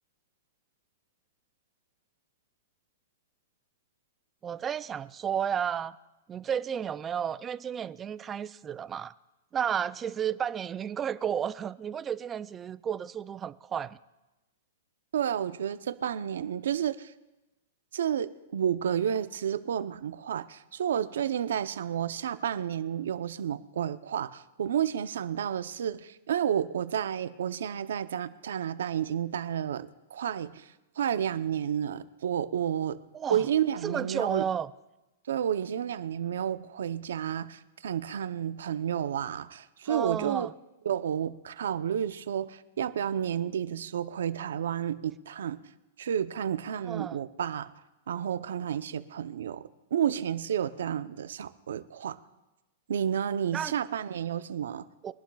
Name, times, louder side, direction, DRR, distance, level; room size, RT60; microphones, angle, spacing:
voice 1, 4.4-6.0 6.3-9.1 9.5-14.0 33.1-33.4 33.8-34.7 39.9-40.5 46.8-47.2 53.5-53.7 55.0-55.1, right 8 dB, 15° right, 0.3 m, -32 dB
voice 2, 15.1-17.1 17.9-30.7 31.0-33.0 33.3-34.4 35.3-40.5 40.8-45.6 46.0-47.7 48.1-49.6 49.9-52.2 52.9-54.8, right 9 dB, 80° right, 0.7 m, -31 dB
23.0 x 11.5 x 2.4 m
hypercardioid pair, 150°, 0 cm